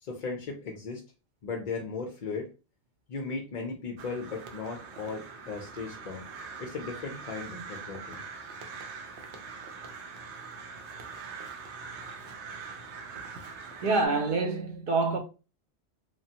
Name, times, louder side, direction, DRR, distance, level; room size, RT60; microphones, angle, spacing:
voice 1, 0.0-1.0 1.4-2.5 3.1-6.3 6.6-8.2, left 4 dB, 55° left, 0.5 m, -36 dB
Crow, 4.0-14.1, right 5 dB, 80° right, 0.9 m, -43 dB
voice 2, 13.8-15.2, right 3 dB, 55° right, 0.6 m, -26 dB
3.2 x 2.2 x 2.7 m
omnidirectional pair, 1.1 m